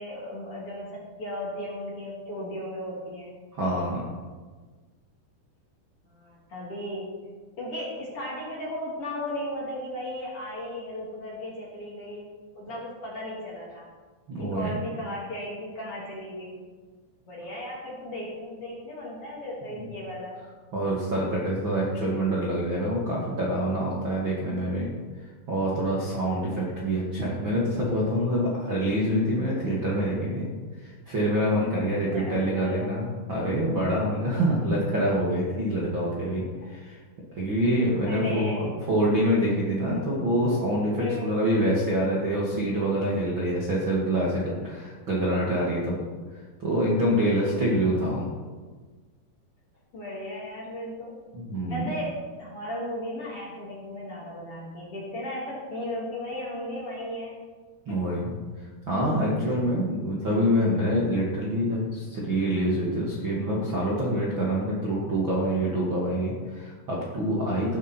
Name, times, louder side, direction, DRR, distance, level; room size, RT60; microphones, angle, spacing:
voice 1, 0.0-3.4 6.1-7.2 7.6-13.9 14.4-16.6 17.3-20.4 32.1-33.1 33.9-34.1 37.6-38.7 39.9-40.1 41.0-41.3 49.9-51.2 51.7-57.4, left 1 dB, 35° left, -5 dB, 3.5 m, -36 dB
voice 2, 3.5-4.0 14.3-14.7 19.8-19.9 20.7-24.9 25.2-30.5 30.8-37.0 37.3-46.0 46.3-48.3 51.3-51.9 57.9-58.3 58.9-67.8, equal, 40° right, -5 dB, 2.0 m, -26 dB
15.0 x 12.0 x 4.6 m, 1.4 s
omnidirectional pair, 5.2 m